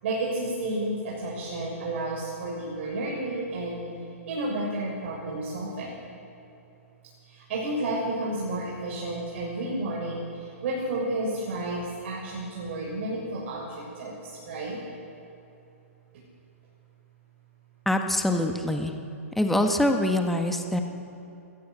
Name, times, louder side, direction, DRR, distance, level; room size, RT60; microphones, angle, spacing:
voice 1, 0.0-3.8 4.2-6.0 7.3-14.8, right 2 dB, 55° right, -4 dB, 6.7 m, -31 dB
voice 2, 17.8-18.9 19.3-20.8, left 1 dB, 5° left, 4 dB, 1.5 m, -24 dB
21.0 x 18.0 x 8.2 m, 2.9 s
hypercardioid pair, 120°, 8 cm